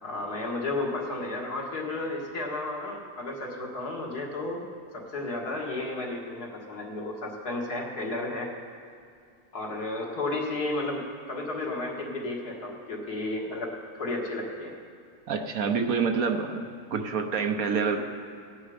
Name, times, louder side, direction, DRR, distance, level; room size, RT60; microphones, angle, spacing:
voice 1, 0.0-4.7 4.9-8.5 9.5-14.7, left 2 dB, 85° left, -2 dB, 2.3 m, -33 dB
voice 2, 15.3-16.6 16.9-18.0, right 5 dB, 65° right, 5 dB, 1.3 m, -27 dB
16.5 x 9.5 x 5.0 m, 2.3 s
omnidirectional pair, 1.6 m